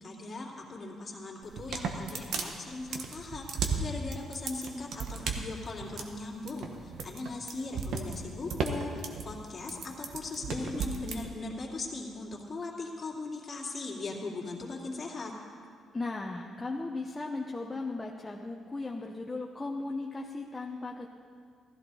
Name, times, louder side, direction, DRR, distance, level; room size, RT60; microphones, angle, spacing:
voice 1, 0.0-15.3, left 3 dB, 35° left, -2 dB, 2.6 m, -39 dB
sound 1, 1.4-11.2, right 5 dB, 75° right, 1.2 m, -35 dB
voice 2, 15.9-21.1, left 3 dB, 20° left, 0 dB, 0.9 m, -36 dB
15.5 x 14.0 x 4.1 m, 2.2 s
cardioid pair, 90°, 0 cm